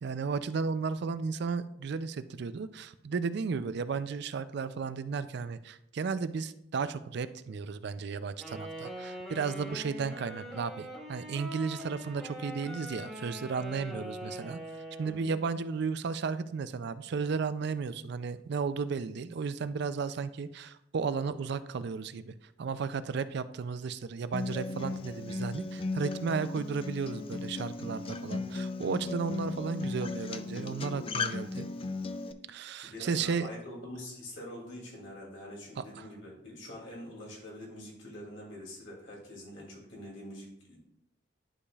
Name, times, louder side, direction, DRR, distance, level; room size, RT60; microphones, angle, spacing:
voice 1, 0.0-14.6 15.0-31.7 32.5-33.5 35.8-35.9, right 5 dB, 60° right, 13 dB, 0.4 m, -34 dB
Wind instrument woodwind instrument, 8.4-15.4, equal, ahead, 1.5 m, -43 dB
voice 2, 15.0-15.3 32.8-40.8, left 1 dB, 90° left, -3 dB, 2.7 m, -45 dB
Acoustic guitar, 24.3-32.3, left 3 dB, 30° left, 0.3 m, -36 dB
11.0 x 5.0 x 2.4 m, 0.77 s
head